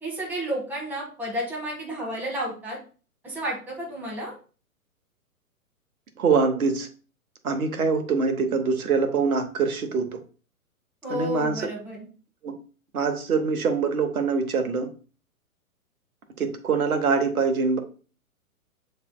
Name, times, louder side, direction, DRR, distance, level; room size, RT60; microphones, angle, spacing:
voice 1, 0.0-2.8 3.2-4.3 11.0-12.0, equal, 5° right, -6 dB, 1.5 m, -31 dB
voice 2, 6.2-6.9 7.4-10.2 11.1-11.6 12.4-12.5 12.9-14.9 16.4-17.8, right 5 dB, 75° right, 7 dB, 1.0 m, -24 dB
7.0 x 3.3 x 2.2 m, 0.38 s
figure-of-eight pair, 120°, 44 cm